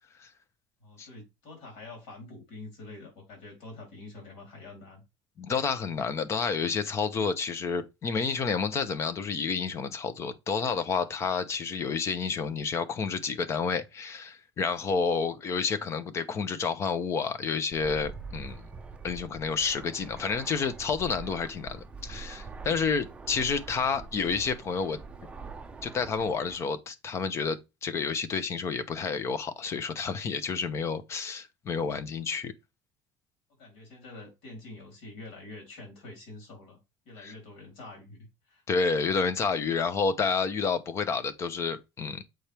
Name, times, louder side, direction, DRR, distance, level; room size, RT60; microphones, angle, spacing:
voice 1, 0.8-5.0 33.6-36.8 37.0-38.6, left 2 dB, 80° left, 4.1 m, -46 dB
voice 2, 5.4-18.6 19.0-25.0 25.8-32.5 37.2-37.3 38.7-42.2, left 5 dB, 30° left, 0.8 m, -30 dB
Fixed-wing aircraft airplane, 17.7-26.6, right 4 dB, 10° right, 0.6 m, -44 dB
7.8 x 4.4 x 3.4 m
cardioid pair, 160°, 9 cm